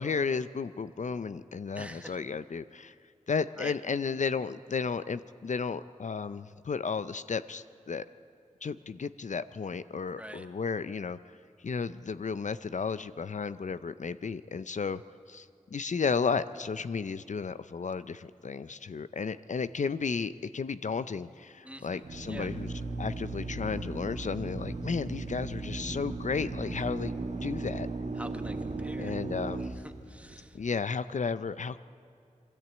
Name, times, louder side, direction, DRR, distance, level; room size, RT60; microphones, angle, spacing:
voice 1, 0.0-2.9 3.3-8.0 8.6-11.2 11.6-15.0 15.3-15.5 15.7-22.7 23.0-27.1 27.4-27.9 29.0-29.7 30.5-31.8, left 5 dB, 70° left, 13 dB, 0.5 m, -33 dB
voice 2, 1.7-2.2 3.6-3.8 10.1-10.5 21.6-22.5 28.2-29.1 29.8-30.6, equal, 10° right, 7 dB, 1.3 m, -45 dB
Drill, 22.0-30.6, right 3 dB, 65° right, 1.7 m, -37 dB
22.5 x 14.0 x 8.8 m, 2.5 s
wide cardioid pair, 80°, 13 cm